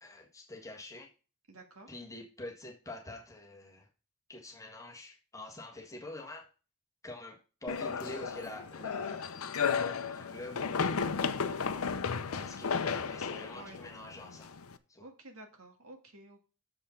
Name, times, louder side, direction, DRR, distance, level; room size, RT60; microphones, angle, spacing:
voice 1, 0.0-1.1 1.9-3.9 4.3-6.5 7.0-10.7 11.4-12.0 12.3-14.6 14.9-15.1, left 2 dB, 15° left, 1.6 m, -46 dB
voice 2, 1.5-1.9 13.5-13.8 15.0-16.4, right 2 dB, 70° right, 1.7 m, -52 dB
sound 1, 7.7-14.8, left 6 dB, 70° left, 0.7 m, -34 dB
7.0 x 5.4 x 5.8 m
head